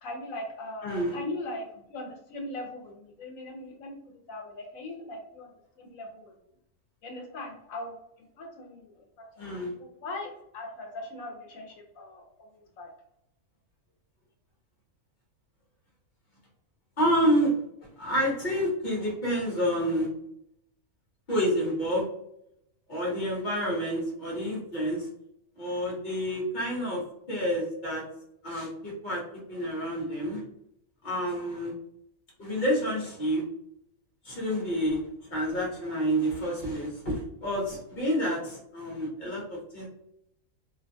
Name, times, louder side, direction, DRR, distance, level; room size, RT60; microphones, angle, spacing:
voice 1, 0.0-4.0 4.3-6.3 7.0-8.0 8.4-9.5 9.8-12.2 12.5-12.9, left 2 dB, 75° left, 2 dB, 1.0 m, -40 dB
voice 2, 0.8-1.2 9.4-9.7 17.0-20.1 21.3-22.1 22.9-25.1 25.6-28.0 28.4-29.2 29.5-30.4 31.0-31.7 32.4-33.4 34.2-35.0 35.3-39.9, equal, 40° left, -3 dB, 0.9 m, -29 dB
2.5 x 2.2 x 2.6 m, 0.77 s
omnidirectional pair, 1.4 m